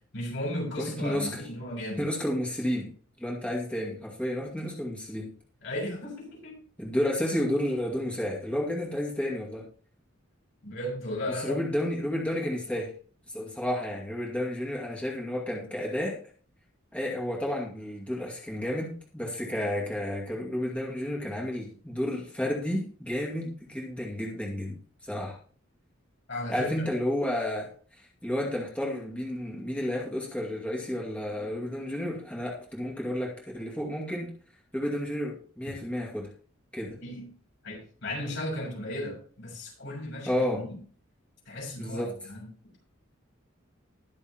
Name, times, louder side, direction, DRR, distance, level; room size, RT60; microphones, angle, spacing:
voice 1, 0.1-2.0 5.6-6.6 10.6-11.6 26.3-26.9 37.0-37.4 37.6-40.8 41.5-42.5, left 1 dB, 65° left, -1 dB, 6.9 m, -35 dB
voice 2, 0.8-1.4 2.0-2.9 3.2-5.3 6.8-9.7 11.3-12.9 13.3-16.2 16.9-25.4 26.5-34.3 34.7-36.3 36.7-37.0 40.3-40.6 41.8-42.1, left 1 dB, 5° left, -3 dB, 2.3 m, -31 dB
20.5 x 6.9 x 3.0 m, 0.43 s
head